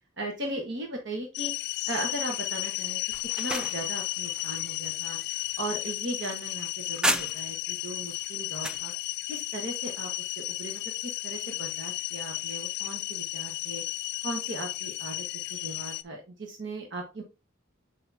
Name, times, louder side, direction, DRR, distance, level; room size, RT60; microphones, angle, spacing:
voice 1, 0.2-1.5 1.9-3.0 3.4-5.2 5.6-8.9 9.3-10.1 10.4-13.8 14.2-15.2 15.5-17.2, right 2 dB, 60° right, 2 dB, 1.2 m, -37 dB
sound 1, 1.3-16.0, left 19 dB, 55° left, 0.5 m, -34 dB
sound 2, 3.1-7.7 8.1-8.9, equal, 5° right, 0.4 m, -34 dB
8.2 x 4.9 x 2.7 m, 0.27 s
head